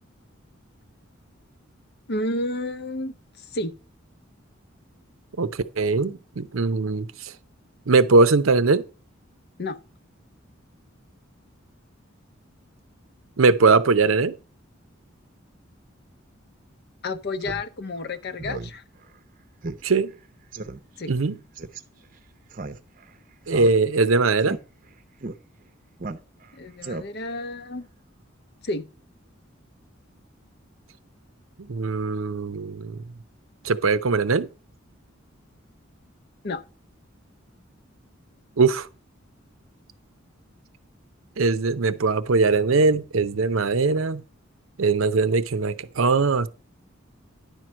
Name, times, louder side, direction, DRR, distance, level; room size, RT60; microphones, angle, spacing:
voice 1, 2.1-3.7 9.6-9.8 17.0-18.8 21.0-21.1 26.5-27.9 28.6-28.9 36.4-36.6, left 2 dB, 55° left, 0.6 m, -31 dB
voice 2, 5.4-7.3 7.9-8.8 13.4-14.3 19.8-20.1 21.1-21.4 23.5-24.6 31.7-33.0 33.6-34.5 38.6-38.9 41.4-44.2 44.8-46.5, right 4 dB, 85° right, 0.7 m, -21 dB
Speech synthesizer, 17.4-17.6 18.0-18.1 18.4-18.7 19.0-19.1 19.6-19.8 20.1-20.2 20.5-20.8 21.6-21.8 22.5-23.1 23.5-24.1 24.4-24.6 25.2-25.4 26.0-26.5 26.8-27.3, right 3 dB, 40° right, 0.7 m, -34 dB
10.5 x 4.5 x 6.2 m
head